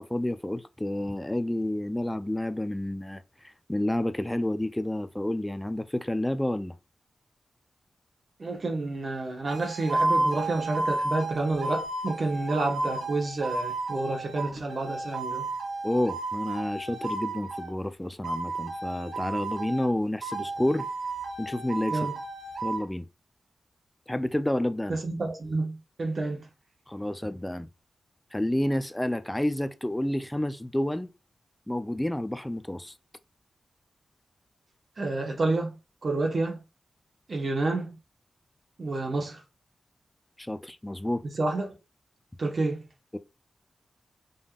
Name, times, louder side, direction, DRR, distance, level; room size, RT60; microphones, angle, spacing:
voice 1, 0.0-3.2 3.7-6.7 15.8-20.9 21.4-22.1 22.6-23.1 24.1-25.0 26.9-27.7 28.3-31.1 31.7-32.9 40.4-41.2 43.1-43.2, left 1 dB, 10° left, 0.5 m, -29 dB
voice 2, 8.4-15.4 21.9-22.1 24.9-26.5 35.0-35.8 36.0-36.6 37.3-38.0 38.8-39.4 41.3-41.7 42.4-42.8, right 2 dB, 50° right, 1.3 m, -29 dB
sound 1, 9.5-17.8 18.2-19.9 20.2-22.8, right 2 dB, 70° right, 1.5 m, -32 dB
5.3 x 3.5 x 2.4 m
wide cardioid pair, 95°, 0 cm